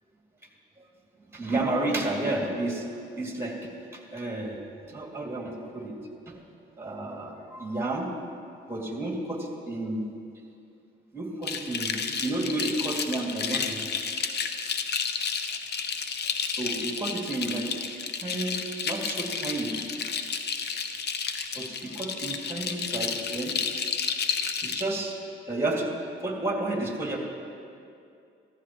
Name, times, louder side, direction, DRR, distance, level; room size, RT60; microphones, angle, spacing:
voice 1, 1.3-2.9 3.1-5.9 6.3-6.4 6.8-8.1 8.7-10.0 11.1-13.9 16.6-17.7 18.2-18.6 18.8-19.8 21.5-23.5 24.6-25.2 25.5-25.9 26.2-27.2, right 2 dB, 15° right, -1 dB, 2.5 m, -31 dB
sound 1, 11.4-24.8, left 6 dB, 55° left, 0.8 m, -31 dB
14.5 x 14.0 x 3.1 m, 2.5 s
cardioid pair, 90°, 20 cm